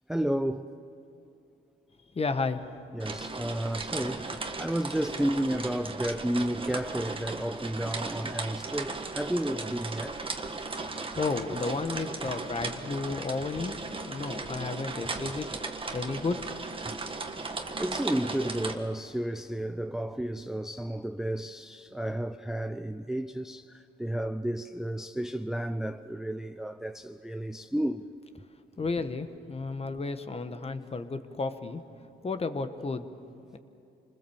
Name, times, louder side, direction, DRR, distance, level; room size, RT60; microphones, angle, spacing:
voice 1, 0.1-0.7 2.9-10.2 17.8-28.0, right 1 dB, ahead, 0.5 m, -32 dB
voice 2, 2.1-2.7 10.7-13.8 14.0-15.5 15.9-16.4 16.9-17.0 28.8-31.8 32.2-33.1 33.5-33.6, left 3 dB, 30° left, 1.4 m, -32 dB
sound 1, 3.0-18.7, right 3 dB, 25° right, 1.6 m, -37 dB
27.0 x 20.5 x 7.3 m
cardioid pair, 90°, 20 cm